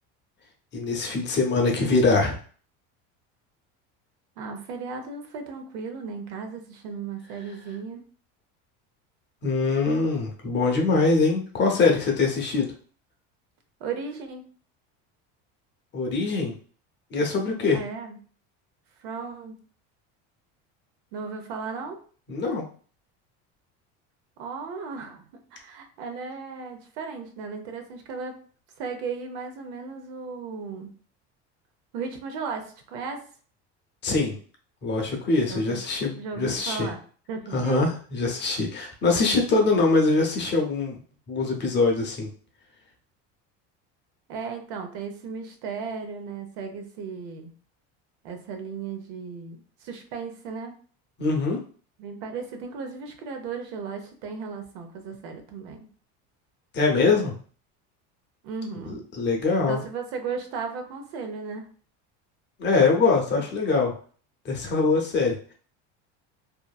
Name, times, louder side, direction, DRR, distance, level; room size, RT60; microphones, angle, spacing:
voice 1, 0.7-2.4 9.4-12.7 15.9-16.5 17.1-17.8 22.3-22.6 34.0-34.4 34.8-36.9 37.5-41.0 41.3-42.3 51.2-51.6 56.7-57.3 58.8-59.8 62.6-63.9 64.4-65.4, left 3 dB, 35° left, 1 dB, 0.7 m, -23 dB
voice 2, 4.4-8.0 13.8-14.4 17.7-18.2 19.0-19.6 21.1-22.0 24.4-25.3 25.5-28.4 28.8-30.9 31.9-33.2 35.5-35.8 36.2-37.0 37.3-37.8 44.3-47.5 48.2-50.7 52.0-55.9 58.4-59.0 59.7-61.7, right 5 dB, 80° right, 5 dB, 0.7 m, -35 dB
2.8 x 2.5 x 2.3 m, 0.42 s
cardioid pair, 145°, 33 cm